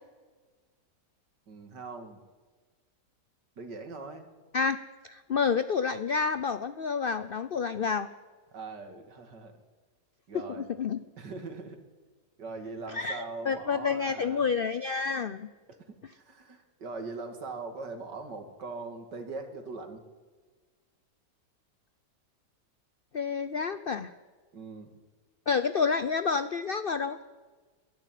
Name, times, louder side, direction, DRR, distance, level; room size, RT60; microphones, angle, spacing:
voice 1, 1.5-2.2 3.6-4.3 8.5-9.6 10.3-10.7 11.2-11.8 12.4-14.5 15.7-20.0 24.5-25.0, right 3 dB, 75° right, 6 dB, 2.9 m, -41 dB
voice 2, 5.0-8.1 10.6-11.0 12.9-15.5 23.1-24.1 25.5-27.2, left 5 dB, 75° left, 13 dB, 0.5 m, -29 dB
23.0 x 12.5 x 9.3 m, 1.4 s
omnidirectional pair, 1.9 m